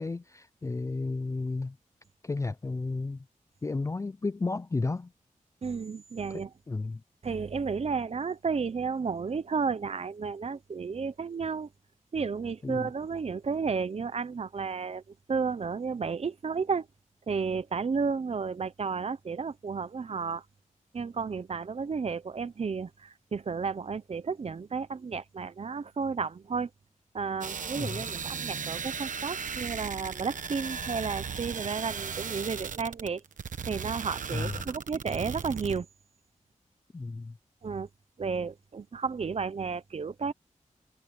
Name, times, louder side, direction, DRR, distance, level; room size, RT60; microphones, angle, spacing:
voice 1, 0.0-1.8 2.2-3.2 3.6-5.1 6.3-7.0 12.6-12.9 27.8-28.1 34.3-34.7 36.9-37.4, left 3 dB, 25° left, 0.4 m, -33 dB
voice 2, 5.6-6.5 7.2-11.7 12.1-15.0 15.3-16.9 17.3-20.4 20.9-26.7 27.1-33.2 33.7-35.9 37.6-37.9 38.2-40.3, right 5 dB, 50° right, 0.9 m, -32 dB
sound 1, 27.4-35.8, right 6 dB, 75° right, 1.1 m, -36 dB
wide cardioid pair, 80°, 14 cm